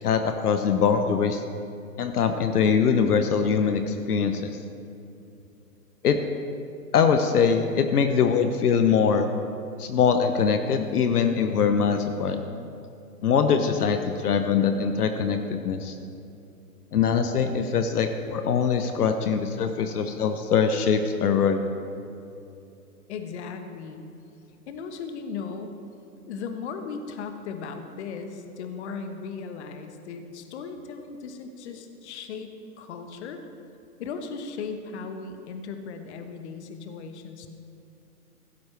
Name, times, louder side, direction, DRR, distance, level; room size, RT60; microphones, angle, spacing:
voice 1, 0.0-1.4 2.0-4.5 6.0-6.2 6.9-9.3 9.8-12.4 13.2-16.0 16.9-21.6, left 6 dB, 70° left, 7 dB, 1.0 m, -23 dB
voice 2, 23.1-24.1 24.7-25.8 26.3-33.4 34.0-37.5, left 5 dB, 45° left, 7 dB, 1.2 m, -37 dB
16.0 x 12.5 x 3.3 m, 2.7 s
hypercardioid pair, 135°, 47 cm